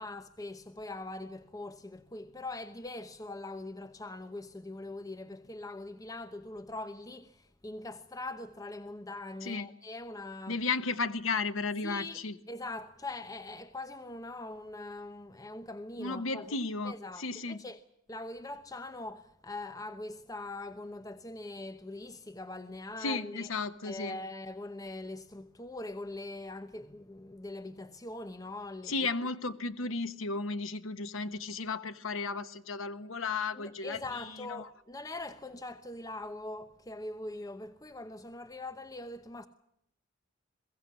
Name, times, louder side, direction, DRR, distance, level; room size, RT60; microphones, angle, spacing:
voice 1, 0.0-10.6 11.8-12.2 12.5-16.6 16.8-17.8 18.1-23.5 23.8-28.9 33.5-39.5, left 2 dB, 20° left, 0.9 m, -42 dB
voice 2, 10.5-12.4 16.0-17.6 23.0-24.2 28.8-34.7, left 4 dB, 90° left, 1.2 m, -34 dB
22.5 x 16.0 x 9.7 m
head